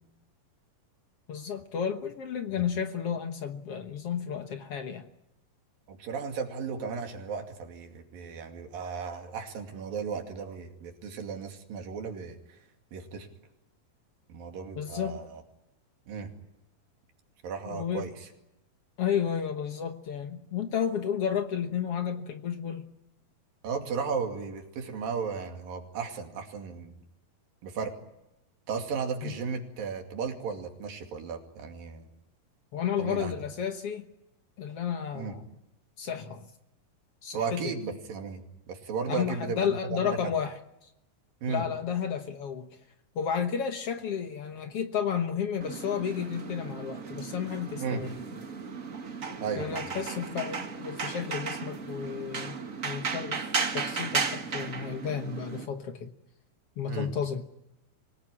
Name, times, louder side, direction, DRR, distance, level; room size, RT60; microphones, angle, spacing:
voice 1, 1.3-5.1 14.8-15.2 17.7-18.1 19.0-22.8 29.2-29.3 32.7-34.1 34.6-35.5 36.0-36.5 37.2-37.7 39.1-40.5 41.5-42.7 43.1-48.2 49.6-52.6 52.8-56.1 56.8-57.4, left 8 dB, 60° left, 7 dB, 1.6 m, -32 dB
voice 2, 5.9-12.6 12.9-13.3 14.3-15.4 16.1-16.3 17.4-18.3 23.6-27.0 27.6-28.0 28.7-32.1 33.0-33.3 35.1-35.3 37.3-40.3 41.4-41.6 47.8-48.0 49.4-49.8 56.9-57.1, right 5 dB, 70° right, 4 dB, 4.2 m, -35 dB
sound 1, 45.6-55.6, right 5 dB, 50° right, 0.9 m, -35 dB
25.0 x 19.0 x 10.0 m, 0.90 s
omnidirectional pair, 4.1 m